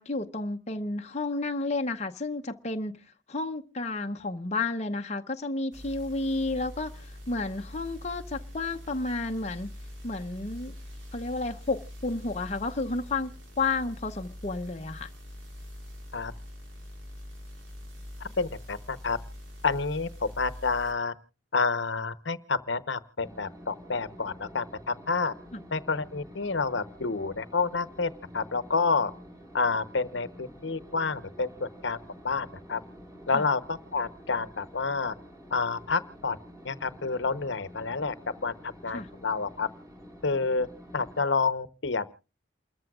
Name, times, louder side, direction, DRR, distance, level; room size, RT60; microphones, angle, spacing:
voice 1, 0.0-3.0 3.3-9.7 10.0-10.7 11.1-15.1 25.5-25.6 33.3-33.4 38.9-39.1, left 3 dB, 35° left, 0.8 m, -31 dB
sound 1, 5.7-20.9, left 1 dB, 75° right, 4.6 m, -44 dB
voice 2, 18.2-19.2 19.6-21.1 21.5-25.3 25.7-29.1 29.5-32.0 32.2-32.8 33.3-35.1 35.5-36.4 36.6-38.1 38.4-39.7 40.2-40.7 40.9-42.0, left 4 dB, 65° left, 0.9 m, -29 dB
sound 2, 23.2-41.2, equal, 15° right, 3.2 m, -49 dB
29.0 x 14.0 x 2.4 m
head